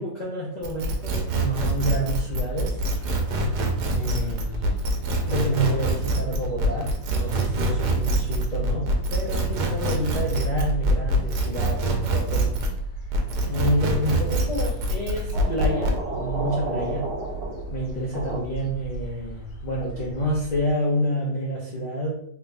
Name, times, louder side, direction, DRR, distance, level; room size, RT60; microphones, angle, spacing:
voice 1, 0.0-2.8 3.9-4.7 5.2-12.6 13.5-17.0 17.7-22.2, equal, 45° left, -4 dB, 0.5 m, -28 dB
sound 1, 0.6-12.8 13.1-16.0, right 1 dB, 85° right, 1.3 m, -25 dB
sound 2, 1.1-20.7, right 3 dB, 75° left, 1.2 m, -34 dB
sound 3, 13.6-14.0 15.3-18.4, right 2 dB, 70° right, 1.5 m, -33 dB
3.5 x 2.6 x 3.3 m, 0.69 s
omnidirectional pair, 1.7 m